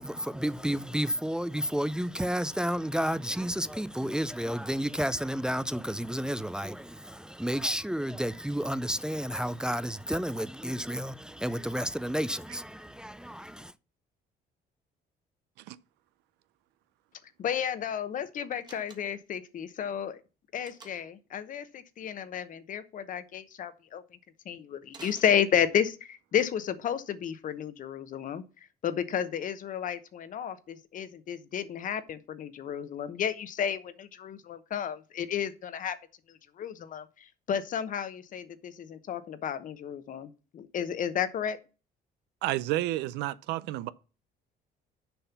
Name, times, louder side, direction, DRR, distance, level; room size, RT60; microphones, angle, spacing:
voice 1, 0.0-13.7, equal, 5° right, 0.4 m, -31 dB
voice 2, 17.4-20.2 20.5-24.0 24.4-28.4 28.8-36.0 36.6-41.6, left 9 dB, 50° left, 0.9 m, -32 dB
Slam, 18.6-19.4 20.6-21.2 24.9-26.0, right 3 dB, 25° right, 1.4 m, -51 dB
voice 3, 42.4-43.9, right 15 dB, 90° right, 0.5 m, -30 dB
7.0 x 5.6 x 5.8 m
cardioid pair, 110°, 17 cm